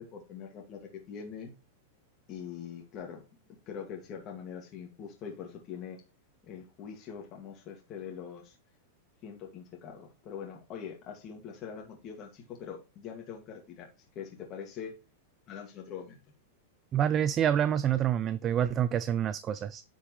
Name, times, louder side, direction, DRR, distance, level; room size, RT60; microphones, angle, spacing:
voice 1, 0.0-1.5 2.3-3.2 3.7-6.0 6.5-8.6 9.2-13.9 14.2-15.0 15.5-16.2, left 7 dB, 35° left, 2.1 m, -43 dB
voice 2, 16.9-19.8, right 9 dB, 30° right, 0.5 m, -27 dB
10.5 x 5.1 x 3.2 m
supercardioid pair, 135°, 0 cm